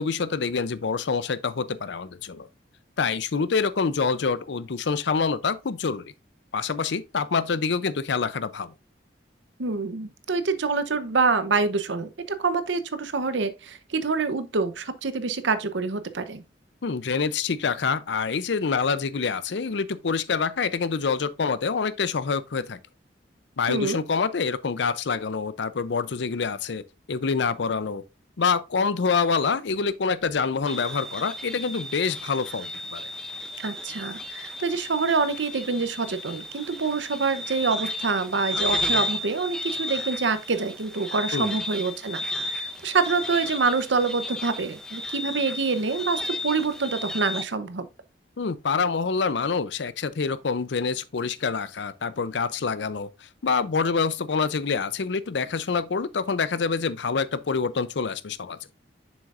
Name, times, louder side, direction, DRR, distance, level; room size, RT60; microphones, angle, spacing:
voice 1, 0.0-2.5 3.0-6.1 6.5-8.7 16.8-22.8 23.6-26.8 27.1-28.0 28.4-33.1 41.3-41.6 48.4-53.1 53.4-58.6, left 5 dB, 75° left, 0.5 m, -26 dB
voice 2, 9.6-16.4 23.7-24.0 33.6-47.9, right 4 dB, 80° right, 0.8 m, -26 dB
sound 1, 30.7-47.4, left 1 dB, 5° left, 0.5 m, -33 dB
7.2 x 6.2 x 2.5 m
head